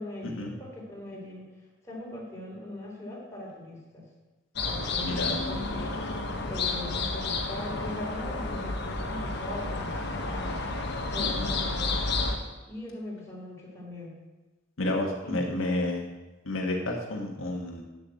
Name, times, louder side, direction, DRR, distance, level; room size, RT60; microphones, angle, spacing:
voice 1, 0.0-1.5 1.8-4.1 4.6-10.7 11.1-12.0 12.7-14.2 15.2-15.6, left 1 dB, 15° left, -5 dB, 3.8 m, -40 dB
sound 1, 4.6-12.4, left 3 dB, 60° left, 1.3 m, -31 dB
voice 2, 5.0-5.4 11.2-11.5 14.8-16.1 16.4-17.8, left 1 dB, 85° left, 0 dB, 1.5 m, -30 dB
8.1 x 7.0 x 8.3 m, 1.1 s
head